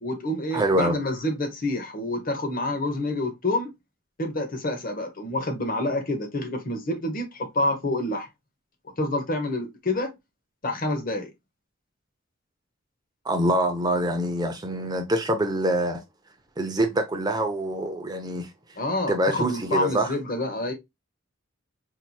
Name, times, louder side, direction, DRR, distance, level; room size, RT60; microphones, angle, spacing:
voice 1, 0.0-3.7 4.2-8.3 9.0-10.1 10.6-11.3 18.8-20.7, left 1 dB, 40° left, 0.9 m, -28 dB
voice 2, 0.5-1.0 13.2-16.0 16.6-18.5 19.1-20.1, right 1 dB, 20° right, 0.5 m, -25 dB
4.5 x 2.8 x 2.2 m
head